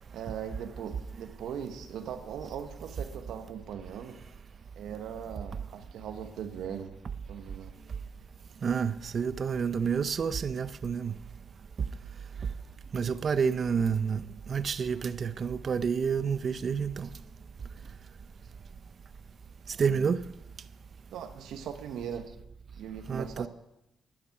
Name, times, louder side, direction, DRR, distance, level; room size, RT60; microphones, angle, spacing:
voice 1, 0.1-4.2 4.8-7.0 7.3-7.7 19.7-20.1 21.1-22.3 22.8-23.5, right 8 dB, 80° right, 1.0 m, -40 dB
voice 2, 8.6-11.1 12.9-17.1 19.8-20.2 23.1-23.5, right 6 dB, 45° right, 0.5 m, -29 dB
10.5 x 10.0 x 5.8 m
cardioid pair, 90°, 0 cm